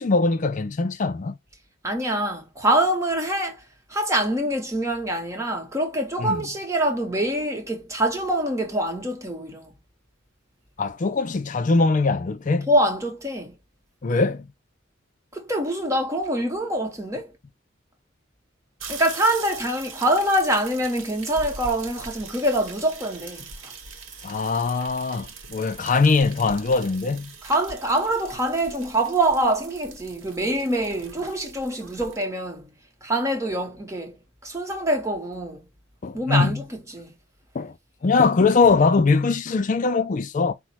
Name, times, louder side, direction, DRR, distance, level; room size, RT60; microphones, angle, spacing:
voice 1, 0.0-1.4 6.2-6.4 10.8-12.7 14.0-14.5 24.2-27.3 36.0-36.6 37.5-37.7 38.0-40.5, left 4 dB, 40° left, 0.4 m, -21 dB
voice 2, 1.8-3.6 3.9-9.7 12.7-13.6 15.3-17.3 18.9-23.7 27.4-32.7 33.0-35.7 36.1-37.1, right 1 dB, 15° right, 0.9 m, -25 dB
sound 1, 18.8-32.2, right 4 dB, 85° right, 0.9 m, -41 dB
5.0 x 2.1 x 4.4 m
head